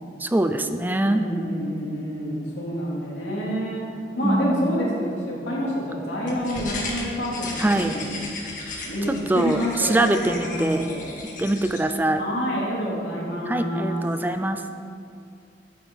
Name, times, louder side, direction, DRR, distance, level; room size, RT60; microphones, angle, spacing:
voice 1, 0.2-1.2 4.2-4.8 7.6-8.0 9.1-10.9 11.2-12.2 13.5-14.6, right 1 dB, 10° right, 8 dB, 0.4 m, -23 dB
voice 2, 1.0-3.8 4.2-7.5 7.7-8.1 8.8-11.1 12.2-14.0, equal, 90° left, -5 dB, 3.1 m, -28 dB
sound 1, 6.3-11.8, left 2 dB, 50° left, 1.9 m, -35 dB
12.5 x 9.5 x 4.0 m, 2.4 s
head